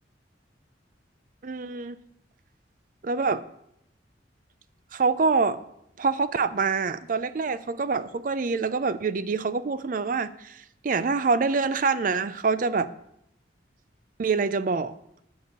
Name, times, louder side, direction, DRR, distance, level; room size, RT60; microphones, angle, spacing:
voice 1, 1.4-2.0 3.0-3.4 4.9-5.6 6.0-12.9 14.2-14.9, right 4 dB, 45° right, 14 dB, 0.4 m, -25 dB
11.0 x 4.8 x 6.7 m, 0.79 s
head